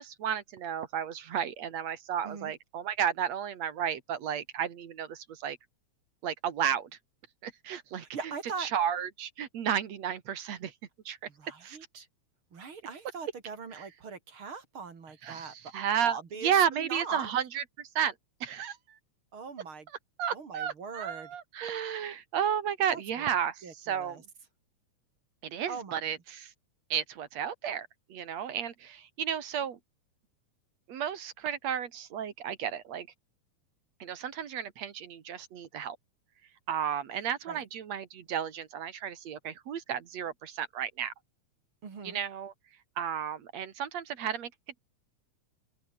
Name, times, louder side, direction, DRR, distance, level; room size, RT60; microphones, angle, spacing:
voice 1, 0.0-5.6 6.2-6.9 7.4-8.1 8.6-10.7 11.1-11.2 11.6-11.8 13.8-13.9 15.2-18.1 18.4-18.8 20.2-24.2 25.4-26.5 26.9-29.8 30.9-33.1 34.0-36.0 36.7-41.1 42.0-42.5 43.0-44.5, right 8 dB, 65° right, 2.9 m, -33 dB
voice 2, 8.0-8.7 11.3-12.1 12.5-15.5 16.0-17.3 19.3-19.9 20.3-21.3 22.9-23.2 23.6-24.2 25.7-26.1 37.5-37.6 41.8-42.2, right 5 dB, 45° right, 3.2 m, -41 dB
omnidirectional pair, 3.4 m